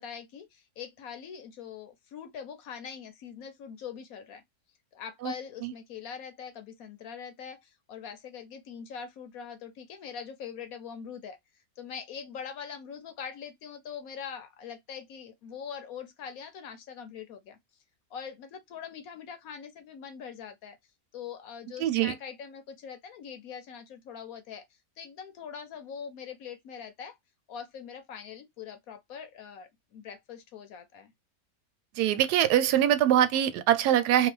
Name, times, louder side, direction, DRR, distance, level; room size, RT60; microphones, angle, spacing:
voice 1, 0.0-4.4 4.9-11.4 11.8-17.6 18.1-20.8 21.1-24.6 25.0-27.2 27.5-31.1, left 7 dB, 70° left, 1.1 m, -42 dB
voice 2, 21.8-22.1 31.9-34.3, right 11 dB, 85° right, 1.1 m, -23 dB
2.9 x 2.4 x 3.0 m
omnidirectional pair, 1.7 m